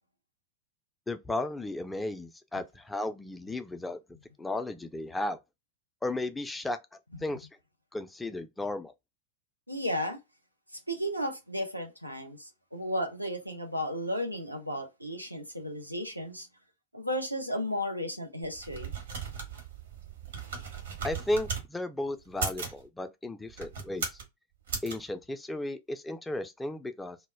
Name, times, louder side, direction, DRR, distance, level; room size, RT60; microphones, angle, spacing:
voice 1, 1.1-4.0 4.4-5.4 6.0-6.8 7.2-7.5 7.9-8.9 21.0-24.2 24.8-27.2, left 2 dB, 10° left, 0.3 m, -34 dB
voice 2, 9.7-10.2 10.9-16.5 16.9-18.9, equal, 90° right, 0.6 m, -34 dB
sound 1, 18.4-21.7 22.3-22.8 23.5-24.3 24.7-24.9, right 5 dB, 65° right, 0.9 m, -37 dB
2.1 x 2.1 x 3.2 m
figure-of-eight pair, 90°, 0 cm